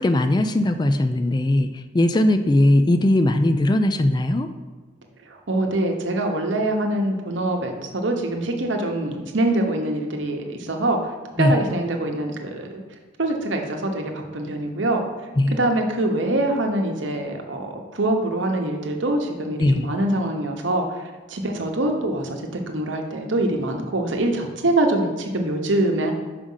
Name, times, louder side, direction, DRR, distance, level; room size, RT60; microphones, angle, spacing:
voice 1, 0.0-1.7 1.9-4.5 11.4-11.5 15.4-15.5 19.6-19.9, left 1 dB, 20° left, 9 dB, 0.3 m, -19 dB
voice 2, 5.3-11.1 11.4-12.8 13.2-15.0 15.5-21.0 21.3-26.1, right 1 dB, 80° right, 3 dB, 1.0 m, -24 dB
6.1 x 5.0 x 5.6 m, 1.3 s
head